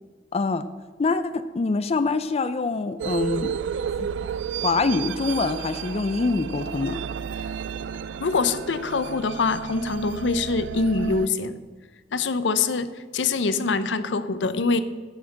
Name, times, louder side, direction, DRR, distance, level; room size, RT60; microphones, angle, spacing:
voice 1, 0.3-0.6 1.0-3.5 4.6-7.0, left 3 dB, 35° left, 12 dB, 0.4 m, -25 dB
sound 1, 3.0-11.3, right 7 dB, 85° right, 0.3 m, -32 dB
voice 2, 8.2-11.6 12.1-14.8, left 4 dB, 85° left, 13 dB, 0.6 m, -24 dB
9.7 x 5.9 x 7.4 m, 1.4 s
head